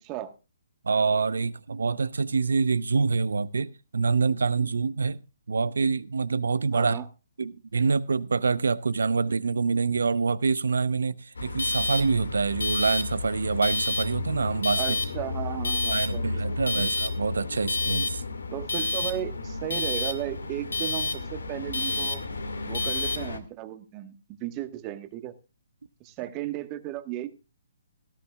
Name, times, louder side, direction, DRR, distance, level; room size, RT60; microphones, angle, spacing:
voice 1, 0.8-5.2 5.5-7.0 7.4-15.0 15.9-18.2, right 4 dB, 75° right, 0.9 m, -26 dB
voice 2, 6.7-7.0 14.7-16.8 18.5-22.2 22.6-25.3 26.0-27.3, right 13 dB, 25° right, 1.5 m, -35 dB
sound 1, 11.4-23.4, left 3 dB, 85° left, 2.2 m, -30 dB
18.0 x 14.0 x 2.4 m
hypercardioid pair, 140°, 0 cm